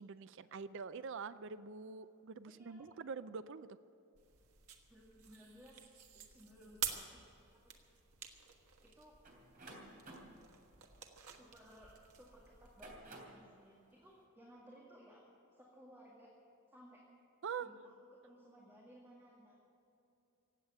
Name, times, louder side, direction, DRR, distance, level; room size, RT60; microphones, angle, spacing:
voice 1, 0.0-3.8 17.4-17.7, right 5 dB, 55° right, 14 dB, 0.4 m, -45 dB
voice 2, 2.5-2.9 4.9-5.8 6.1-7.2 7.6-7.9 8.8-9.1 11.4-15.2 15.6-16.3 16.7-17.0 17.6-19.6, equal, 10° right, -4 dB, 2.1 m, -60 dB
sound 1, 4.1-13.0, right 8 dB, 80° right, 1.5 m, -49 dB
sound 2, 9.2-12.0 12.6-13.5, right 2 dB, 40° right, 3.2 m, -54 dB
17.0 x 8.2 x 10.0 m, 2.8 s
head